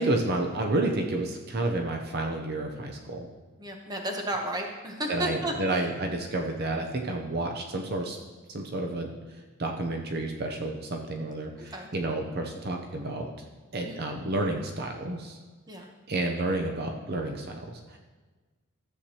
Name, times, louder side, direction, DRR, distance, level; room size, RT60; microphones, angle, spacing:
voice 1, 0.0-3.2 5.1-8.2 8.5-9.1 9.6-13.3 13.7-15.4 16.1-18.0, right 2 dB, 50° right, 2 dB, 0.7 m, -30 dB
voice 2, 3.6-5.9 11.6-11.9 13.8-14.0 15.7-15.9, right 1 dB, 20° right, 2 dB, 1.0 m, -33 dB
13.0 x 8.0 x 2.9 m, 1.3 s
head